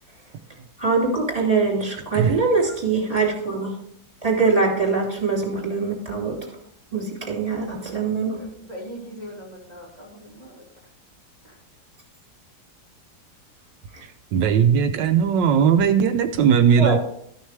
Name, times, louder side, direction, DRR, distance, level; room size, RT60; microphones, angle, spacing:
voice 1, 0.8-3.8 4.2-6.4 6.9-8.4 13.9-14.0 16.8-17.0, right 4 dB, 20° right, -3 dB, 3.0 m, -23 dB
voice 2, 7.9-10.6 11.4-11.6, equal, 25° left, -4 dB, 2.5 m, -41 dB
voice 3, 14.0-17.0, right 7 dB, 80° right, 7 dB, 1.3 m, -18 dB
13.0 x 6.4 x 3.3 m, 0.70 s
omnidirectional pair, 2.0 m